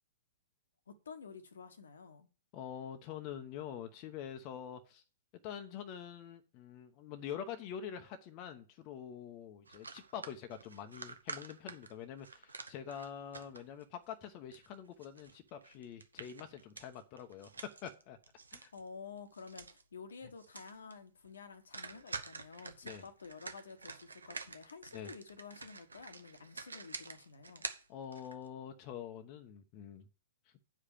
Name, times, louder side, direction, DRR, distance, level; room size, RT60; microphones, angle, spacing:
voice 1, 0.9-2.3 18.7-27.7, left 5 dB, 70° left, 1.2 m, -51 dB
voice 2, 2.5-5.0 5.4-18.2 18.5-18.7 22.8-23.0 24.9-25.1 27.9-30.1, left 9 dB, 35° left, 1.0 m, -45 dB
sound 1, 9.7-13.8 14.2-18.9 19.2-19.8 20.1-20.2 20.4-20.9 21.2-21.4 21.7-28.5, right 4 dB, 75° right, 1.0 m, -48 dB
8.7 x 5.0 x 7.1 m
figure-of-eight pair, 110°, 0 cm